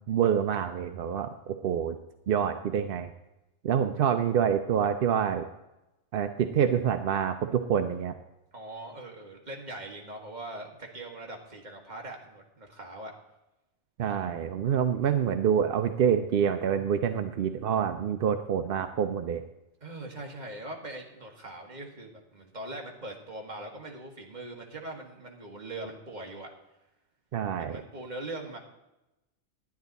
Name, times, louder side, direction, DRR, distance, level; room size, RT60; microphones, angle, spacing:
voice 1, 0.1-2.0 2.3-3.1 3.6-5.4 6.1-8.2 14.0-19.4 27.3-27.8, right 8 dB, 60° right, 8 dB, 0.6 m, -27 dB
voice 2, 8.5-13.1 19.8-26.5 27.6-28.6, right 2 dB, 35° right, 1 dB, 1.7 m, -41 dB
10.5 x 10.5 x 4.0 m, 0.95 s
omnidirectional pair, 1.4 m